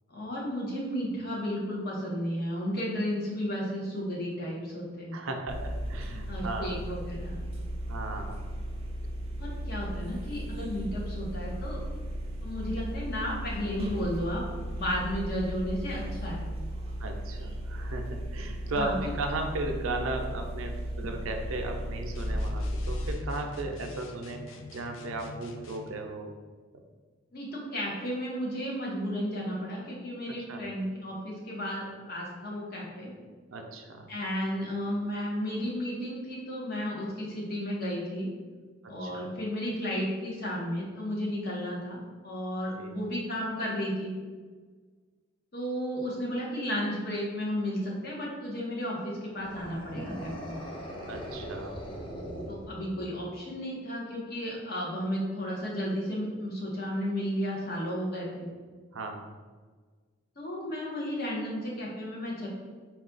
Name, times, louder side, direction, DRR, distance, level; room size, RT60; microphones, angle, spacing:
voice 1, 0.1-5.2 6.3-7.4 9.4-11.8 12.4-14.4 14.7-16.5 18.7-18.9 27.3-33.1 34.1-38.3 38.9-44.1 45.5-50.7 52.5-58.5 60.4-62.5, equal, 50° left, -4 dB, 1.0 m, -33 dB
voice 2, 5.1-6.8 7.9-8.4 17.0-26.3 30.5-30.6 33.5-34.1 38.8-39.2 42.8-43.0 51.1-51.8 58.9-59.3, right 2 dB, 85° right, 3 dB, 0.5 m, -36 dB
sound 1, 5.5-23.1, equal, 30° right, 0.4 m, -35 dB
sound 2, 22.1-26.0, left 3 dB, 75° left, 0.4 m, -47 dB
sound 3, 49.4-53.2, equal, 25° left, 0.5 m, -40 dB
4.1 x 2.3 x 3.8 m, 1.5 s
head